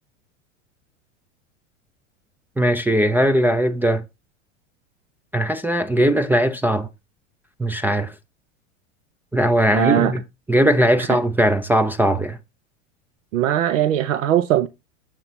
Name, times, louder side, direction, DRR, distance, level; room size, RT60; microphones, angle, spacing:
voice 1, 2.6-4.0 5.3-6.9 7.6-8.1 9.3-10.2 10.5-12.4, right 1 dB, 5° right, 0.3 m, -19 dB
voice 2, 9.7-10.1 11.0-11.2 13.3-14.7, right 11 dB, 80° right, 0.6 m, -20 dB
7.3 x 3.8 x 4.4 m
hypercardioid pair, 95°, 37 cm